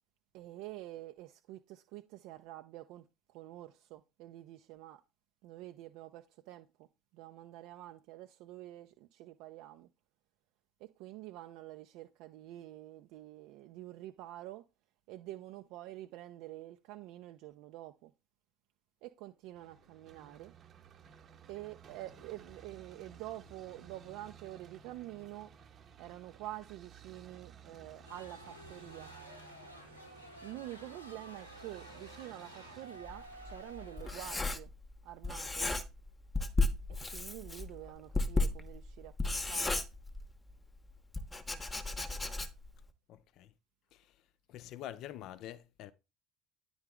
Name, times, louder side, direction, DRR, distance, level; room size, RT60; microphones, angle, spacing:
voice 1, 0.3-5.0 5.4-6.9 7.1-9.9 10.8-14.7 15.1-18.1 19.0-20.5 21.5-25.5 26.0-29.2 30.4-34.7 35.0-35.7 36.9-39.8 41.5-41.7, right 15 dB, 60° right, 0.4 m, -48 dB
sound 1, 19.6-33.9, right 6 dB, 40° right, 0.7 m, -56 dB
sound 2, 28.0-34.4, equal, 90° left, 0.7 m, -52 dB
Writing, 33.1-35.0 35.2-36.1 36.3-40.5 41.1-42.8, left 2 dB, 15° left, 0.8 m, -34 dB
voice 2, 43.1-43.5 43.9-44.1 44.5-45.9, left 12 dB, 50° left, 0.5 m, -46 dB
9.6 x 3.7 x 3.5 m
figure-of-eight pair, 60°, 0 cm